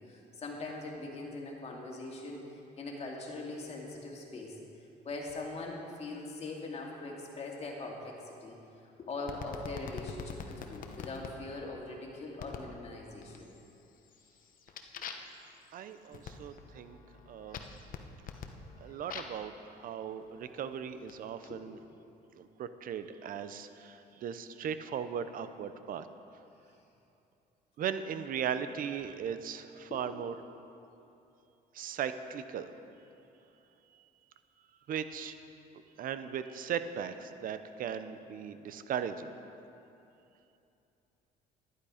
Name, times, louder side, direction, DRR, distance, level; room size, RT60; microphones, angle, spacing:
voice 1, 0.1-2.4 2.8-4.6 5.0-8.6 9.0-13.5 15.0-15.1 21.5-21.7 29.9-30.0, left 2 dB, 40° left, -1 dB, 2.2 m, -41 dB
sound 1, 9.3-11.3 12.4-12.7 13.2-13.7 14.1-19.5 20.3-21.5, left 6 dB, 55° left, 1.0 m, -45 dB
voice 2, 15.7-17.0 17.3-17.6 18.8-21.8 22.3-26.1 27.8-30.3 31.7-32.7 34.9-35.4 36.0-39.4, right 8 dB, 55° right, 11 dB, 0.7 m, -38 dB
11.5 x 11.0 x 5.0 m, 2.8 s
cardioid pair, 110°, 17 cm